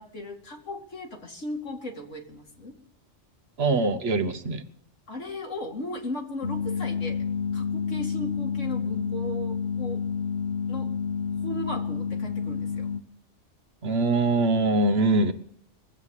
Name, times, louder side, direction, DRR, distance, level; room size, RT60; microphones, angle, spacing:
voice 1, 0.0-2.8 5.1-7.2 7.5-10.0 10.7-11.0 11.4-12.9, left 1 dB, 85° left, 1 dB, 2.8 m, -36 dB
voice 2, 3.6-4.7 13.8-15.3, right 2 dB, 60° right, 9 dB, 1.2 m, -23 dB
sound 1, 6.4-13.0, left 6 dB, 60° left, 1.1 m, -29 dB
21.5 x 8.2 x 7.3 m, 0.70 s
omnidirectional pair, 1.2 m